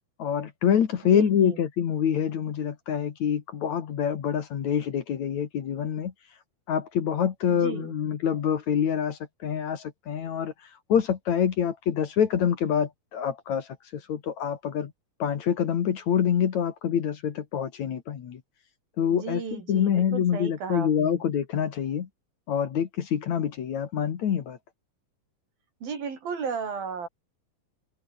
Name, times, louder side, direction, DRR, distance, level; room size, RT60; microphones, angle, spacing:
voice 1, 0.2-6.1 6.7-10.5 10.9-13.7 14.1-14.9 15.2-18.4 19.0-22.1 22.5-24.6, left 8 dB, 55° left, 2.8 m, -26 dB
voice 2, 1.0-1.6 7.5-7.9 19.1-21.2 25.8-27.1, right 6 dB, 75° right, 6.3 m, -35 dB
omnidirectional pair, 4.2 m